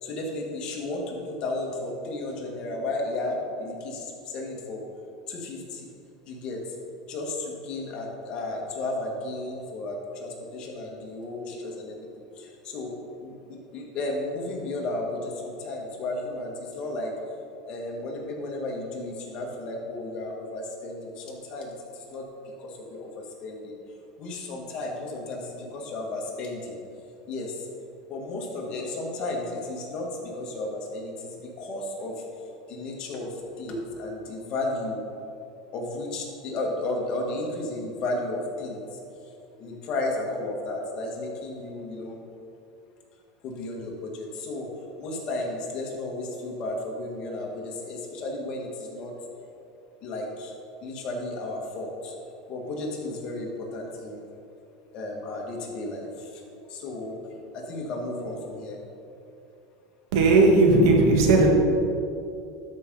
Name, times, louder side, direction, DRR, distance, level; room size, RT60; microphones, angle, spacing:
voice 1, 0.0-4.8 5.3-5.9 6.3-6.6 7.1-12.1 12.3-12.9 13.2-17.1 17.6-22.2 22.6-23.8 24.2-26.8 27.3-27.7 28.1-32.2 32.7-35.0 35.7-39.0 39.6-42.2 43.4-44.7 45.0-49.1 50.0-50.5 50.8-52.1 52.5-54.3 54.9-56.4 56.7-57.2 57.5-58.8, left 2 dB, 40° left, -1 dB, 1.8 m, -33 dB
voice 2, 60.1-61.5, right 2 dB, 75° right, 1 dB, 1.6 m, -17 dB
12.5 x 5.4 x 3.8 m, 2.7 s
supercardioid pair, 135°, 2 cm